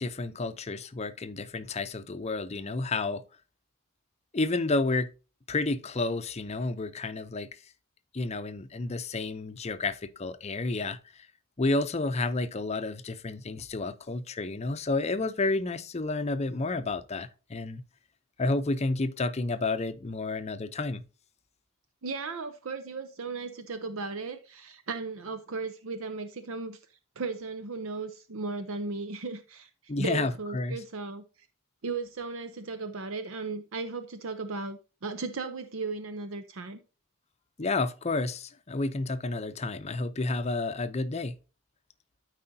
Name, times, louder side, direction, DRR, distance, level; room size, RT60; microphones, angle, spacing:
voice 1, 0.0-3.2 4.3-5.1 5.5-7.5 8.1-11.0 11.6-17.8 18.4-21.0 29.9-30.8 37.6-41.3, left 3 dB, 30° left, 0.6 m, -30 dB
voice 2, 22.0-26.8 27.2-31.5 31.8-36.8, right 4 dB, 70° right, 0.7 m, -36 dB
12.5 x 4.9 x 2.7 m
head